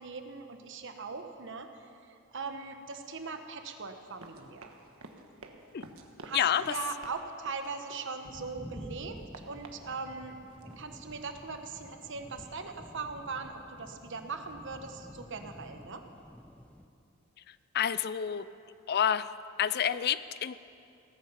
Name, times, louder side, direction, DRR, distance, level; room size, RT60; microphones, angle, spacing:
voice 1, 0.0-4.7 6.2-6.4 6.7-9.2 9.5-16.0, right 4 dB, 60° right, 6 dB, 1.2 m, -40 dB
Run, 4.0-8.5 8.9-10.8, right 2 dB, 80° right, 1.3 m, -52 dB
voice 2, 6.3-6.7 17.5-18.5 18.9-19.3 19.6-20.6, left 9 dB, 50° left, 15 dB, 0.4 m, -29 dB
sound 1, 8.2-16.9, equal, 5° left, 0.7 m, -50 dB
17.5 x 14.5 x 5.8 m, 2.6 s
head